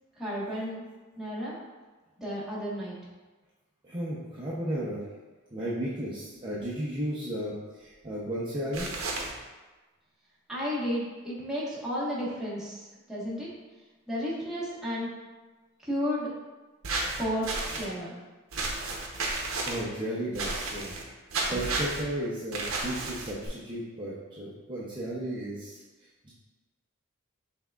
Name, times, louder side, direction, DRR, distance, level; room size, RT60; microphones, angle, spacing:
voice 1, 0.2-0.9 1.2-1.6 2.2-3.0 10.5-13.5 14.1-15.1 15.8-16.3 17.2-18.2, equal, 5° right, -8 dB, 1.2 m, -33 dB
voice 2, 3.8-5.0 5.5-8.9 19.7-20.9 21.5-25.8 26.2-26.3, right 1 dB, 25° right, -8 dB, 0.6 m, -34 dB
sound 1, 8.7-9.3 16.8-17.9 18.5-19.8 20.3-21.0 21.3-22.0 22.5-23.5, right 3 dB, 70° right, 0.7 m, -32 dB
5.7 x 3.5 x 2.3 m, 1.2 s
head